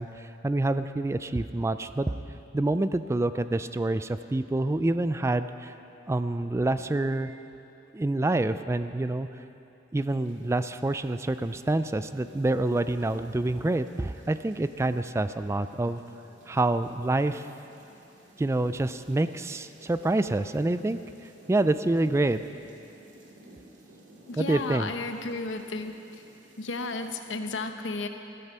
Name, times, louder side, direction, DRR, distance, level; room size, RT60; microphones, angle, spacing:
voice 1, 0.0-2.2 2.5-5.7 6.1-7.4 7.9-9.3 9.9-16.0 16.5-17.5 18.4-21.0 21.5-22.4 24.4-24.9, right 2 dB, 15° right, 11 dB, 0.3 m, -27 dB
sound 1, 10.0-27.3, right 1 dB, 80° right, 2.3 m, -55 dB
voice 2, 24.3-26.2 26.6-28.1, left 3 dB, 90° left, 7 dB, 0.9 m, -33 dB
14.5 x 13.5 x 5.5 m, 2.9 s
head